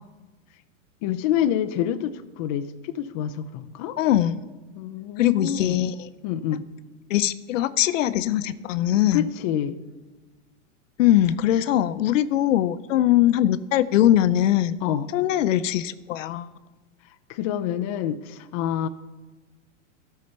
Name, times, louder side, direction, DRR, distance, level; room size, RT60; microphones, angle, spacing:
voice 1, 1.0-4.0 4.8-5.8 6.2-6.6 9.1-9.8 14.8-15.1 17.3-18.9, left 10 dB, 30° left, 8 dB, 0.4 m, -27 dB
voice 2, 4.0-4.4 5.2-6.1 7.1-9.3 11.0-14.8 15.1-16.5, left 12 dB, 75° left, 14 dB, 0.7 m, -21 dB
12.5 x 5.7 x 6.7 m, 1.3 s
supercardioid pair, 150°, 39 cm